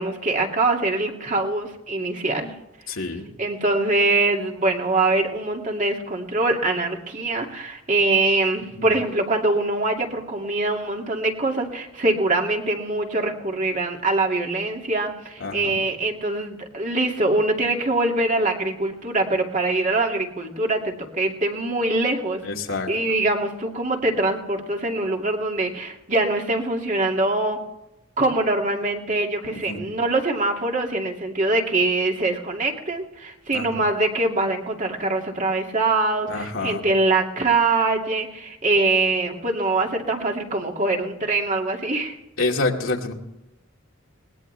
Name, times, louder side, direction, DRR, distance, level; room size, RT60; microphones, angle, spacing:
voice 1, 0.0-2.5 3.4-22.4 22.9-27.6 28.2-42.1, right 2 dB, 35° right, 1 dB, 2.4 m, -23 dB
voice 2, 2.9-3.3 8.8-8.9 15.4-15.9 22.4-23.2 29.6-29.9 33.5-33.8 36.3-36.9 42.4-43.1, left 3 dB, 65° left, 1 dB, 2.4 m, -28 dB
21.0 x 19.5 x 3.4 m, 0.92 s
head